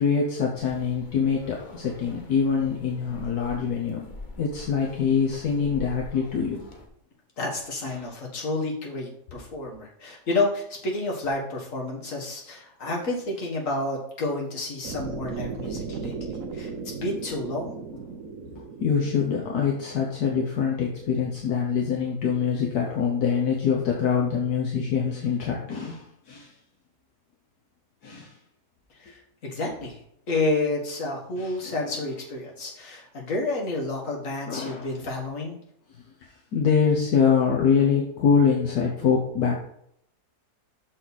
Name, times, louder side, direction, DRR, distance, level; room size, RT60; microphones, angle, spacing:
voice 1, 0.0-4.1 4.4-6.6 7.9-8.1 18.5-26.5 28.0-28.4 31.4-32.0 34.5-34.9 36.5-39.5, left 6 dB, 75° left, -2 dB, 1.6 m, -24 dB
sound 1, 0.5-6.9, left 2 dB, 35° left, 1.1 m, -45 dB
voice 2, 7.4-17.8 29.0-30.0 30.3-35.6, left 2 dB, 55° left, -2 dB, 2.1 m, -30 dB
sound 2, 14.8-20.9, right 5 dB, 60° right, 1.1 m, -37 dB
6.5 x 6.1 x 4.1 m, 0.72 s
omnidirectional pair, 1.7 m